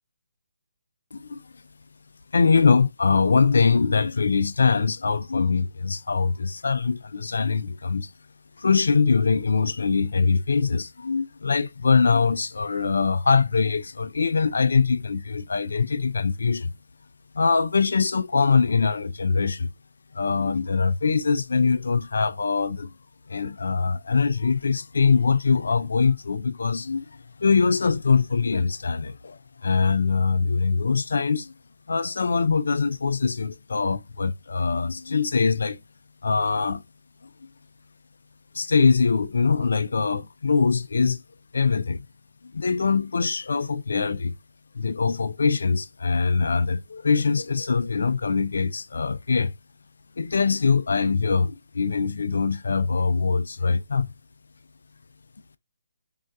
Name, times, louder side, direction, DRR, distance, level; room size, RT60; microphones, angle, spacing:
voice 1, 1.1-1.4 2.3-8.1 8.6-16.7 17.3-19.7 20.1-22.9 23.3-31.5 31.9-35.8 36.2-36.8 37.2-37.3 38.5-41.2 41.5-42.0 42.5-44.4 44.7-49.5 50.2-54.1, left 5 dB, 80° left, 0.3 m, -23 dB
3.5 x 2.2 x 2.6 m
hypercardioid pair, 160°, 0 cm